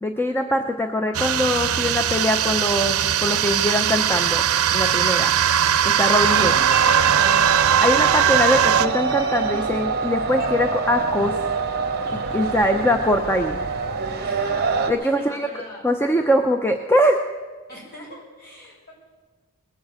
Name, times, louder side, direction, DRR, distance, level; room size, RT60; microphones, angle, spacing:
voice 1, 0.0-5.3 5.8-6.5 7.8-11.4 12.1-13.6 14.9-15.4 15.8-17.2, left 1 dB, 10° left, 5 dB, 0.6 m, -22 dB
sound 1, 1.1-8.9, right 9 dB, 75° right, 0.6 m, -20 dB
sound 2, 6.2-14.9, right 4 dB, 45° right, 1.2 m, -25 dB
voice 2, 6.7-7.3 14.2-14.6 15.0-15.8 17.7-18.9, equal, 45° left, -4 dB, 5.8 m, -41 dB
20.0 x 7.3 x 7.5 m, 1.4 s
head